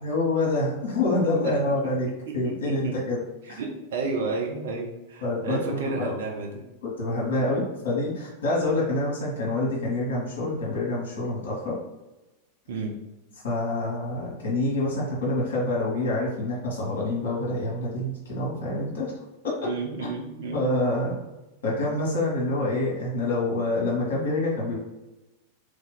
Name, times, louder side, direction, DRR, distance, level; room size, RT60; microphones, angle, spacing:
voice 1, 0.0-3.2 3.5-3.6 5.2-6.2 6.8-11.8 13.4-19.1 19.4-19.7 20.0-20.1 20.5-21.2 21.6-24.8, left 2 dB, 55° left, -4 dB, 1.1 m, -27 dB
voice 2, 3.6-6.5 7.3-7.6 12.7-12.9 19.6-20.6, right 3 dB, 60° right, 0 dB, 0.8 m, -31 dB
3.2 x 2.8 x 3.7 m, 1.0 s
figure-of-eight pair, 90°, 0 cm